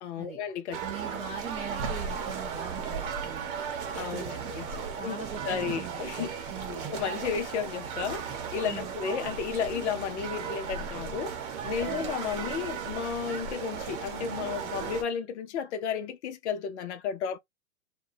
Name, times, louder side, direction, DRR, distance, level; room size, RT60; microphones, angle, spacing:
voice 1, 0.0-0.8 1.1-1.2 3.9-4.7 5.0-5.2 5.4-6.3 6.7-11.4 11.6-17.4, left 7 dB, 55° left, 0.6 m, -33 dB
sound 1, 0.7-15.0, right 6 dB, 40° right, 0.9 m, -36 dB
voice 2, 0.8-3.5 4.1-4.5 5.0-6.9 8.6-8.9 11.8-12.1, right 6 dB, 15° right, 0.5 m, -42 dB
2.6 x 2.1 x 2.5 m
hypercardioid pair, 145°, 42 cm